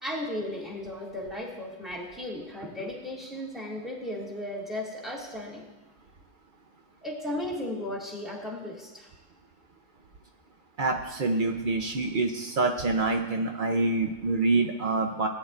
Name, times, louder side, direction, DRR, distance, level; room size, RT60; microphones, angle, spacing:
voice 1, 0.0-5.6 7.0-9.1, left 1 dB, ahead, -3 dB, 2.1 m, -35 dB
voice 2, 10.8-15.3, right 3 dB, 80° right, 3 dB, 0.4 m, -26 dB
18.5 x 9.7 x 2.5 m, 1.1 s
omnidirectional pair, 1.8 m